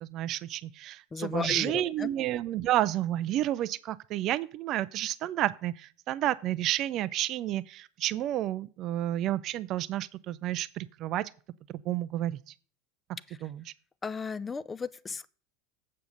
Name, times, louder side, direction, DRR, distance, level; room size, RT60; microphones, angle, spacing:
voice 1, 0.0-11.3 11.8-12.5 13.4-13.6, right 13 dB, 45° right, 0.5 m, -30 dB
voice 2, 1.1-2.1 13.3-13.4 14.0-15.3, left 5 dB, 20° left, 0.6 m, -35 dB
7.7 x 6.9 x 6.6 m
figure-of-eight pair, 75°, 0 cm